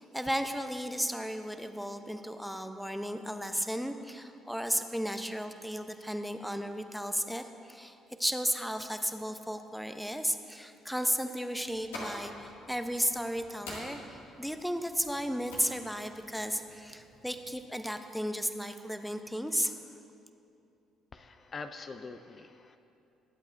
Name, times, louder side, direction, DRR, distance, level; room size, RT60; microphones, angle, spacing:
voice 1, 0.0-14.0 14.4-19.8, equal, ahead, 7 dB, 0.7 m, -34 dB
sound 1, 11.6-17.6, left 1 dB, 85° left, 2.0 m, -47 dB
voice 2, 21.1-22.8, left 4 dB, 40° left, 8 dB, 0.5 m, -44 dB
20.0 x 8.2 x 2.6 m, 2.7 s
hypercardioid pair, 55°, 0 cm